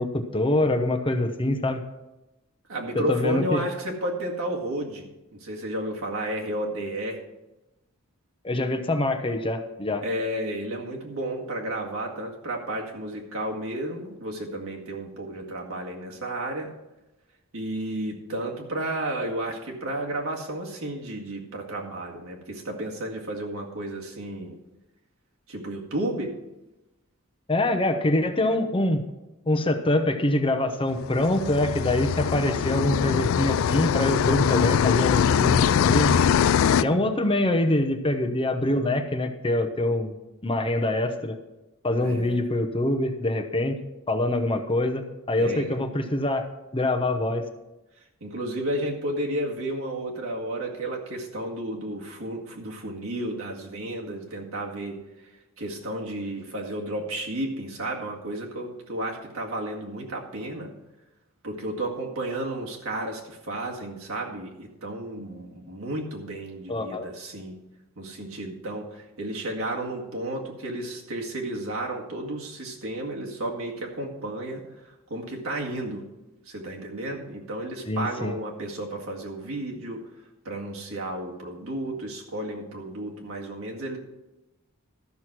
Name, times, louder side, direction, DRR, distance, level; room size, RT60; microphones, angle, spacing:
voice 1, 0.0-1.8 2.9-3.6 8.4-10.0 27.5-29.0 29.5-36.2 36.8-40.1 40.4-41.4 41.8-43.7 44.1-46.4 46.7-47.4 66.7-67.1 77.9-78.3, left 1 dB, 25° left, 6 dB, 0.8 m, -24 dB
voice 2, 2.7-7.2 10.0-16.7 17.5-24.6 25.5-26.4 36.7-37.1 42.0-42.4 45.4-45.8 48.2-55.0 55.6-60.7 61.4-67.6 68.0-76.1 76.5-80.1 80.4-84.0, right 1 dB, 75° right, -1 dB, 2.0 m, -32 dB
sound 1, 31.0-36.8, left 8 dB, 65° left, 0.3 m, -22 dB
13.0 x 6.3 x 6.0 m, 0.99 s
head